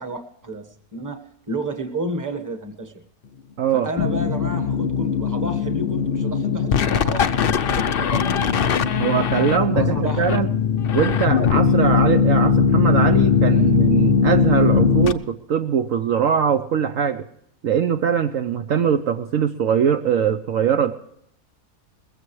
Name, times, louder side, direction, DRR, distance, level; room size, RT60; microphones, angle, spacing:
voice 1, 0.0-3.0 3.7-9.2 9.7-10.3 11.7-11.9, right 2 dB, 15° right, 7 dB, 1.1 m, -31 dB
voice 2, 3.6-3.9 9.0-10.5 10.9-17.2 17.6-20.9, right 8 dB, 65° right, 8 dB, 1.0 m, -21 dB
sound 1, 4.0-15.1, left 6 dB, 60° left, 0.6 m, -19 dB
21.0 x 15.5 x 3.2 m, 0.72 s
omnidirectional pair, 1.7 m